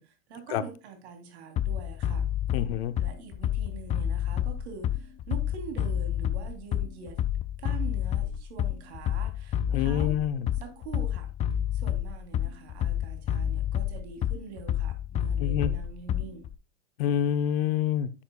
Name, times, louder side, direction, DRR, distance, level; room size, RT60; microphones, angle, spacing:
voice 1, 0.0-2.2 3.0-7.2 7.6-10.1 10.6-11.3 11.7-16.4, right 6 dB, 70° right, 3.1 m, -44 dB
Bass drum, 1.6-16.5, left 10 dB, 20° left, 0.4 m, -29 dB
voice 2, 2.5-2.9 9.7-10.5 15.4-15.7 17.0-18.1, left 9 dB, 60° left, 0.9 m, -27 dB
10.5 x 6.8 x 2.3 m
hypercardioid pair, 115°, 34 cm